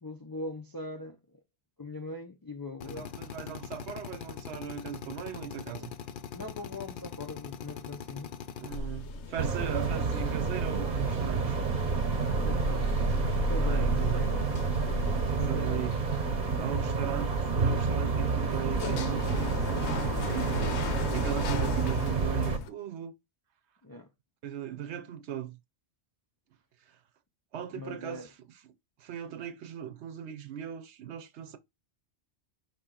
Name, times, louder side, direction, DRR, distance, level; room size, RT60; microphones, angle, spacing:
voice 1, 0.0-1.4 1.8-3.2 6.3-8.4 12.4-13.0 13.5-14.5 14.9-15.9 16.5-17.1 23.8-24.1 27.7-28.3, left 2 dB, 35° left, 0.3 m, -41 dB
Drill, 2.8-8.8, left 7 dB, 55° left, 0.7 m, -42 dB
voice 2, 2.8-5.9 8.6-11.5 13.6-14.3 15.3-16.0 16.6-23.1 24.4-25.6 26.9-27.0 27.5-28.6 29.0-31.6, right 10 dB, 75° right, 0.9 m, -38 dB
sound 1, 8.7-22.7, left 1 dB, 80° left, 1.0 m, -35 dB
sound 2, 9.4-22.6, right 4 dB, 45° right, 0.8 m, -29 dB
4.9 x 2.8 x 3.7 m
omnidirectional pair, 1.1 m